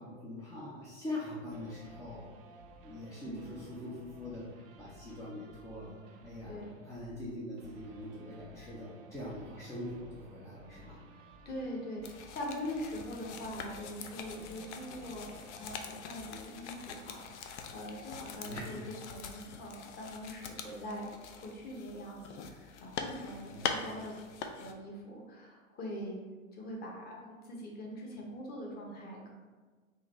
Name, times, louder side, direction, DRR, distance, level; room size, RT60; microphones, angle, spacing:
voice 1, 0.0-2.3 2.8-11.0 18.4-18.8 23.5-23.7, left 1 dB, 10° left, -7 dB, 0.4 m, -43 dB
sound 1, 1.5-15.7, right 1 dB, 45° right, 0.5 m, -55 dB
voice 2, 3.2-3.5 6.5-6.7 11.1-24.2 24.6-26.2 26.5-29.3, equal, 25° left, -1 dB, 0.9 m, -43 dB
sound 2, 12.0-24.7, left 6 dB, 60° left, 0.5 m, -43 dB
3.8 x 2.6 x 3.0 m, 1.4 s
hypercardioid pair, 105°, 41 cm